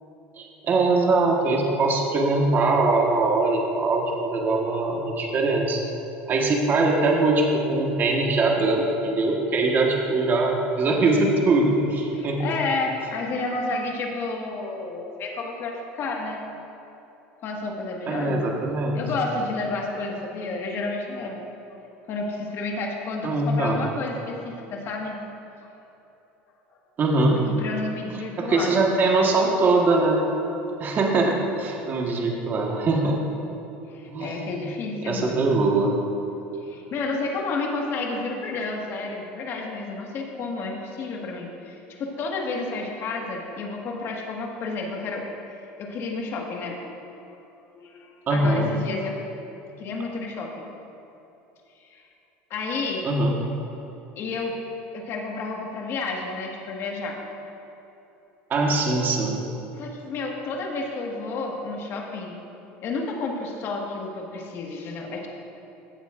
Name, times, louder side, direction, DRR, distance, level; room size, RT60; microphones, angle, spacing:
voice 1, 0.4-5.8 6.3-12.4 18.1-19.0 23.2-23.8 27.0-27.4 28.4-30.2 30.8-33.2 34.1-34.6 35.1-35.9 48.3-48.7 53.0-53.4 58.5-59.4, right 3 dB, 35° right, 0 dB, 1.4 m, -22 dB
voice 2, 12.1-16.4 17.4-18.4 18.9-21.4 22.1-25.1 25.6-25.7 27.4-29.0 33.9-35.5 36.6-45.3 45.8-46.8 47.2-47.3 47.7-49.2 49.8-50.7 51.9-52.0 52.5-53.0 54.2-54.5 54.9-57.2 59.7-62.4 62.8-65.3, left 3 dB, 50° left, 0 dB, 1.6 m, -31 dB
15.5 x 8.1 x 2.5 m, 2.9 s
supercardioid pair, 110°, 5 cm